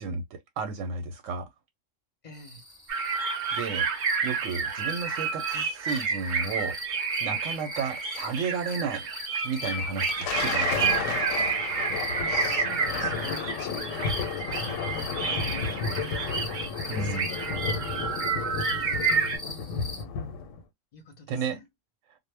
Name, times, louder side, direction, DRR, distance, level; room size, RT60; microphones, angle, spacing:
voice 1, 0.0-1.5 3.5-3.9 4.2-6.8 7.2-9.0 9.4-11.1 16.9-17.3 21.3-21.6, right 5 dB, 90° right, 0.9 m, -33 dB
voice 2, 2.2-2.6 12.2-16.5 17.0-17.9 18.6-19.3 20.9-21.7, left 3 dB, 45° left, 0.6 m, -46 dB
sound 1, 2.3-20.0, left 2 dB, 5° right, 0.7 m, -43 dB
sound 2, 2.9-19.4, right 5 dB, 55° right, 0.6 m, -30 dB
Thunder, 9.8-20.6, left 6 dB, 90° left, 1.0 m, -32 dB
2.1 x 2.0 x 3.2 m
omnidirectional pair, 1.3 m